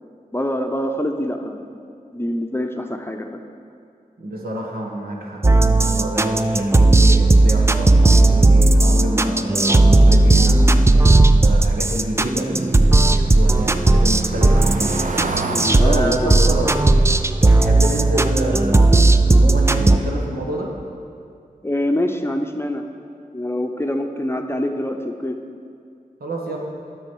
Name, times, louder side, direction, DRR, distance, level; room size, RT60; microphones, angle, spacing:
voice 1, 0.3-1.7 2.1-3.3 15.5-16.6 21.6-22.9 23.3-25.4, left 1 dB, 15° left, 4 dB, 0.7 m, -25 dB
voice 2, 4.2-15.0 15.8-16.7 17.5-20.7 26.2-26.6, right 1 dB, 80° right, -1 dB, 1.4 m, -28 dB
sound 1, 5.4-20.0, right 2 dB, 20° right, 0.4 m, -15 dB
Car passing by / Engine, 11.9-18.8 19.2-19.4 19.7-19.8, right 3 dB, 60° right, 0.7 m, -33 dB
8.3 x 6.1 x 6.1 m, 2.4 s
cardioid pair, 50°, 15 cm